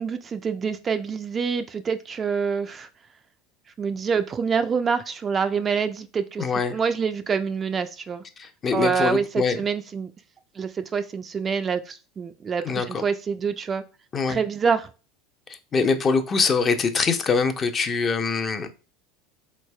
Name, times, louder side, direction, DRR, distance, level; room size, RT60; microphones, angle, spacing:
voice 1, 0.0-2.9 3.8-8.2 8.7-10.1 10.6-13.8 14.3-14.9, right 6 dB, 30° right, 0.4 m, -26 dB
voice 2, 6.4-6.8 8.4-9.6 12.6-13.0 14.1-14.4 15.7-18.7, left 5 dB, 30° left, 0.6 m, -23 dB
3.9 x 3.2 x 2.2 m
hypercardioid pair, 85°, 0 cm